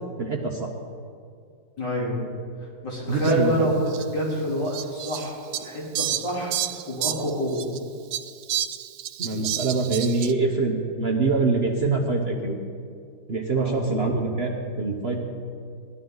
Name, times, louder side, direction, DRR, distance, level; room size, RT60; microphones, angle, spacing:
voice 1, 0.2-0.7 3.1-3.7 9.2-12.6 13.3-14.5 14.8-15.2, right 3 dB, 40° right, 0 dB, 1.2 m, -24 dB
voice 2, 1.8-2.2 2.8-6.5 6.9-7.7 13.6-13.8, equal, 70° left, -6 dB, 4.2 m, -27 dB
Fowl, 3.2-3.3 3.9-4.0 4.7-7.8 8.1-10.3, right 11 dB, 75° right, 0.8 m, -30 dB
19.0 x 12.5 x 3.9 m, 2.3 s
omnidirectional pair, 1.9 m